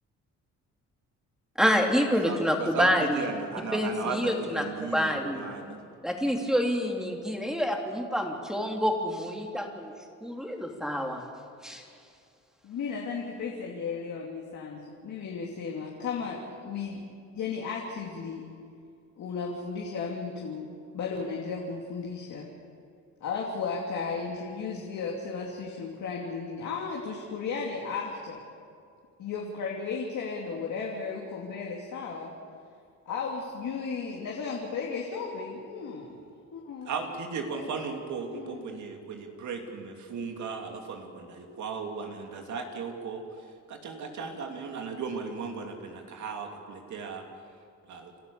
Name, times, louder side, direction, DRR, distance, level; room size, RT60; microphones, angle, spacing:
voice 1, 1.6-3.3 3.7-5.4 6.0-9.9 10.2-11.2 11.6-11.8, equal, ahead, 2 dB, 3.2 m, -27 dB
voice 2, 2.2-2.9 3.1-5.8 36.9-43.2 43.7-47.2 47.9-48.1, right 5 dB, 70° right, 3 dB, 2.8 m, -36 dB
voice 3, 5.4-5.9 12.6-17.0 17.3-18.4 19.2-20.7 20.9-22.5 23.2-28.4 29.2-32.3 33.0-36.2 36.5-36.9 37.5-37.7 38.3-38.8, left 5 dB, 70° left, -2 dB, 3.1 m, -35 dB
30.0 x 12.5 x 7.1 m, 2.4 s
cardioid pair, 90°, 30 cm